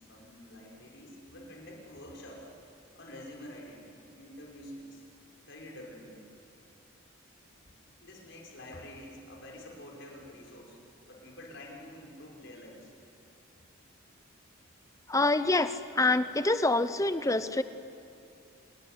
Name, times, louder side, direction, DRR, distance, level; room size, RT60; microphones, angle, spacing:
voice 1, 0.0-2.5 2.9-3.9 4.2-5.1 5.4-6.3 8.0-10.8 11.1-12.9, left 1 dB, 60° left, -2 dB, 6.1 m, -47 dB
voice 2, 15.1-17.6, left 2 dB, 15° left, 12 dB, 0.9 m, -26 dB
28.5 x 19.5 x 10.0 m, 2.5 s
head